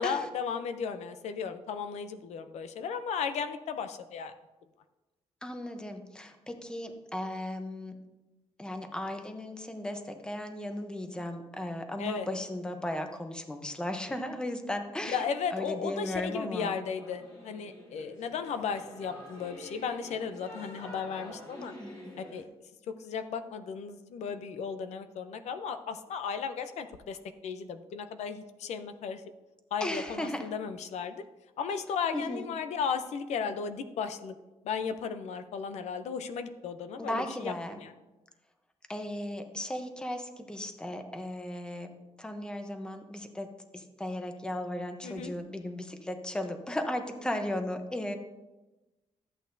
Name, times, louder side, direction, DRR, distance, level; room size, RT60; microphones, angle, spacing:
voice 1, 0.0-4.3 12.0-12.3 15.1-21.7 22.2-22.5 22.9-27.2 27.4-29.2 29.7-31.2 31.6-34.3 34.6-37.9 45.0-45.3, left 6 dB, 70° left, 9 dB, 0.6 m, -35 dB
voice 2, 5.4-8.0 8.6-16.8 21.6-22.2 29.8-30.5 32.1-32.5 37.0-37.8 38.9-41.9 42.2-48.2, left 1 dB, 5° left, 6 dB, 0.8 m, -36 dB
Singing / Musical instrument, 17.0-22.4, equal, 35° left, 2.1 m, -47 dB
13.5 x 8.3 x 2.7 m, 1.1 s
cardioid pair, 150°, 12 cm